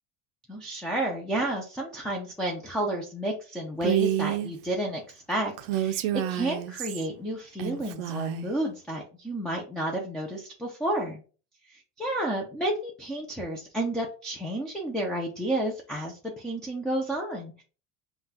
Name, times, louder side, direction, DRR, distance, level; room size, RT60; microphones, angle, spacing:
voice 1, 0.5-11.2 12.0-17.6, right 1 dB, ahead, 0 dB, 0.5 m, -31 dB
Female speech woman speaking, 3.8-4.5 5.6-7.1 7.6-8.5, right 12 dB, 70° right, 0.6 m, -29 dB
5.6 x 2.4 x 2.8 m, 0.37 s
cardioid pair, 130°, 44 cm